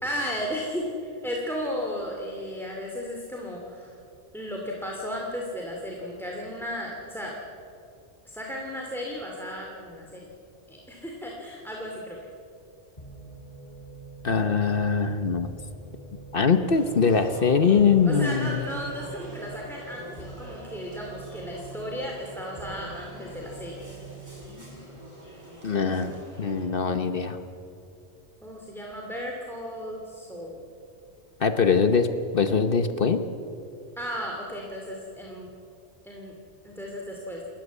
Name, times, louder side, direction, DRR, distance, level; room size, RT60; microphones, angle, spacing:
voice 1, 0.0-4.0 4.3-7.4 8.2-10.3 10.7-12.2 18.1-23.7 28.4-30.6 34.0-35.5 36.0-36.3 36.6-37.4, equal, ahead, -1 dB, 2.5 m, -34 dB
sound 1, 13.0-25.0, right 4 dB, 35° left, 3.3 m, -45 dB
voice 2, 14.2-15.5 16.3-18.7 25.6-27.4 31.4-33.2, left 5 dB, 55° left, 9 dB, 1.1 m, -22 dB
sound 2, 16.7-26.6, right 1 dB, 25° right, 7.4 m, -45 dB
28.5 x 14.0 x 8.3 m, 2.6 s
omnidirectional pair, 1.2 m